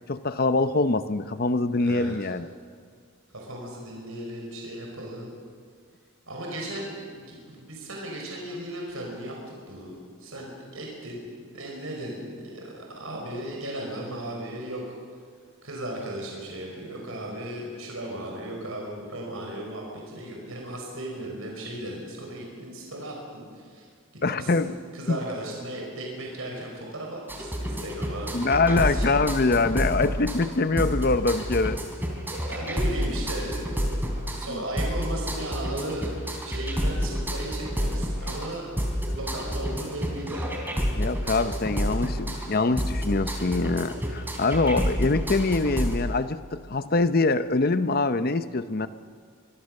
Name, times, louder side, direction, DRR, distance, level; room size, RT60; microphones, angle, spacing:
voice 1, 0.1-2.5 24.2-24.7 25.1-25.2 28.3-31.8 34.5-34.6 40.9-48.9, left 3 dB, 45° left, 12 dB, 0.7 m, -24 dB
voice 2, 1.8-2.2 3.3-5.3 6.3-9.3 9.7-9.9 10.2-11.2 11.5-14.8 15.6-23.9 24.3-29.2 32.5-34.1 34.4-36.1 36.4-38.9 39.1-40.5 41.0-41.2, right 1 dB, 80° right, -1 dB, 5.1 m, -36 dB
sound 1, 27.3-46.0, equal, 10° right, 3.3 m, -29 dB
25.0 x 21.5 x 6.5 m, 2.1 s
head